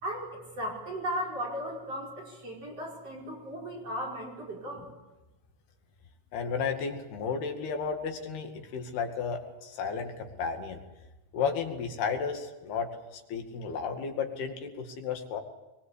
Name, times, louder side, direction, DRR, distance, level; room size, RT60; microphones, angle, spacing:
voice 1, 0.0-4.8, equal, 35° right, 0 dB, 5.9 m, -36 dB
voice 2, 6.3-10.8 11.3-15.4, left 6 dB, 60° left, 4 dB, 4.0 m, -33 dB
23.0 x 22.5 x 8.4 m, 1.1 s
omnidirectional pair, 5.3 m